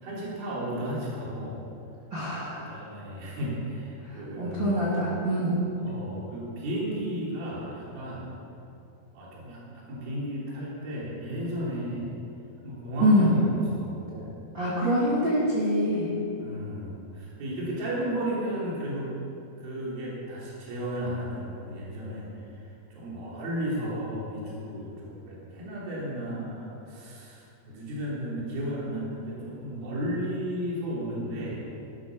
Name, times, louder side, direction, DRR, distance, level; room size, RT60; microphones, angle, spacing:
voice 1, 0.0-1.6 2.7-5.0 5.8-8.3 9.1-12.2 12.6-14.4 16.4-19.1 19.6-22.3 22.6-31.7, equal, 65° right, -6 dB, 5.0 m, -34 dB
voice 2, 2.1-2.6 4.1-5.6 13.0-13.3 14.5-16.1, equal, 35° right, -8 dB, 2.5 m, -25 dB
14.0 x 12.5 x 6.4 m, 2.8 s
omnidirectional pair, 4.6 m